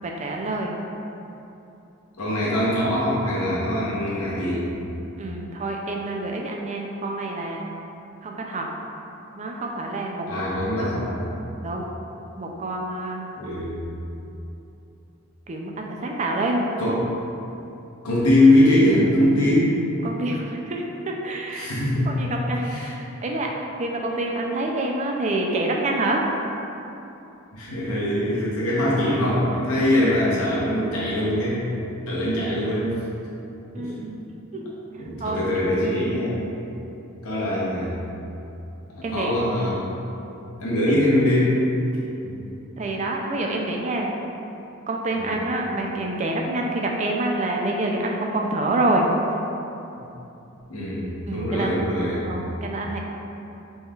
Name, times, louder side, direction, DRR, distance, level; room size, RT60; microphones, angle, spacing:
voice 1, 0.0-0.7 5.2-7.7 8.2-8.7 9.3-10.5 10.8-10.9 11.6-11.9 12.4-13.3 15.5-16.7 20.0-21.7 22.1-23.5 23.8-26.3 33.7-34.2 34.5-34.6 35.2-35.5 39.0-39.3 42.8-44.2 44.9-49.1 51.3-51.8 52.2-53.0, right 2 dB, 30° right, 0 dB, 0.3 m, -27 dB
voice 2, 2.2-4.6 10.3-11.2 13.4-13.7 16.8-17.0 18.0-19.7 21.5-22.1 22.6-22.9 27.5-31.6 32.1-32.9 33.8-33.9 35.0-36.4 37.2-37.9 38.9-39.8 40.6-41.6 42.2-42.4 45.2-45.4 50.0-50.1 50.7-52.2, left 1 dB, 90° left, -8 dB, 0.9 m, -22 dB
5.3 x 3.1 x 2.4 m, 2.9 s
head